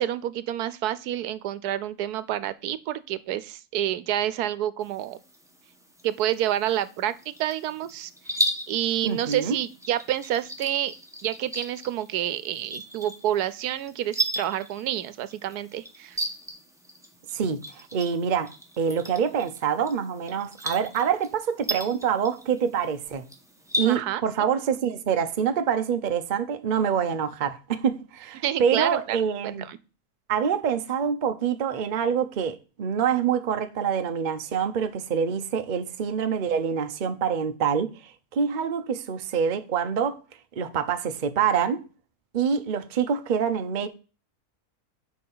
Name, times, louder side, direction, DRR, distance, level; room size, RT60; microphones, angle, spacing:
voice 1, 0.0-5.2 6.0-8.4 8.7-10.9 11.2-16.2 23.8-24.2 28.4-29.2 29.4-29.8, right 12 dB, 85° right, 1.2 m, -28 dB
sound 1, 4.8-24.0, right 1 dB, ahead, 1.2 m, -36 dB
voice 2, 9.0-9.6 17.3-23.2 23.8-29.6 30.3-40.2 40.6-41.9 42.3-43.9, right 7 dB, 40° right, 0.7 m, -26 dB
6.8 x 4.8 x 5.5 m
omnidirectional pair, 1.6 m